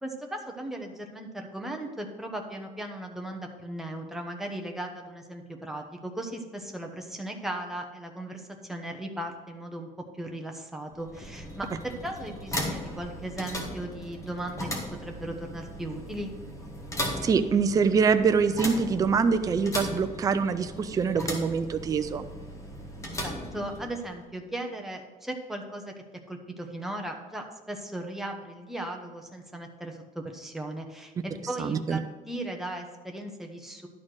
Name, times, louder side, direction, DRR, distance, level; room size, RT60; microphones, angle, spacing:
voice 1, 0.0-9.9 10.2-14.7 15.0-16.3 23.2-25.9 26.3-31.1 31.5-33.9, right 1 dB, ahead, 2 dB, 0.9 m, -37 dB
sound 1, 10.9-24.2, equal, 20° left, 1.2 m, -37 dB
voice 2, 17.2-22.2 31.6-32.0, right 5 dB, 25° right, 9 dB, 0.4 m, -24 dB
11.0 x 4.3 x 6.3 m, 1.3 s
cardioid pair, 165°, 15 cm